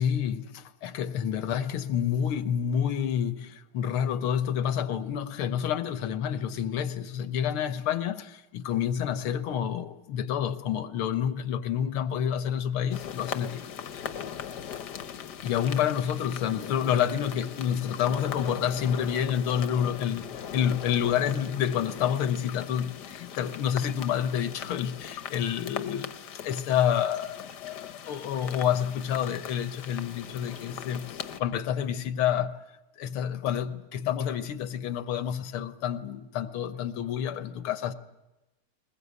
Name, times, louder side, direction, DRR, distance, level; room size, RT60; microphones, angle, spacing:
voice 1, 0.0-13.6 15.4-26.1 26.4-32.6 33.0-37.9, left 9 dB, 85° left, 1.9 m, -28 dB
sound 1, 12.9-31.4, left 8 dB, 60° left, 1.4 m, -40 dB
21.5 x 20.5 x 8.2 m
omnidirectional pair, 2.3 m